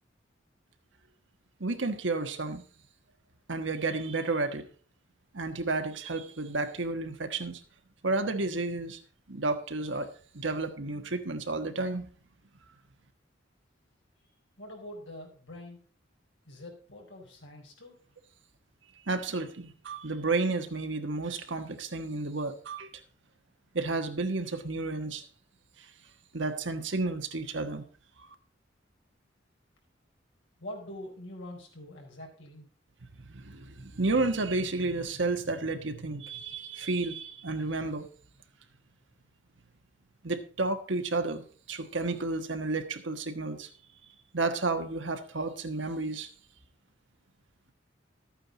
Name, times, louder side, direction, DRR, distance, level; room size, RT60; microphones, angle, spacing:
voice 1, 1.6-2.6 3.5-4.7 5.3-7.6 8.0-9.0 9.3-10.1 10.3-12.0 19.1-22.9 23.7-25.2 26.3-27.8 33.3-38.1 40.2-43.7 44.3-46.3, right 3 dB, 70° right, 1.3 m, -31 dB
voice 2, 14.6-15.8 16.5-18.0 30.6-32.6, left 1 dB, 70° left, 4.5 m, -44 dB
13.0 x 8.9 x 4.0 m
head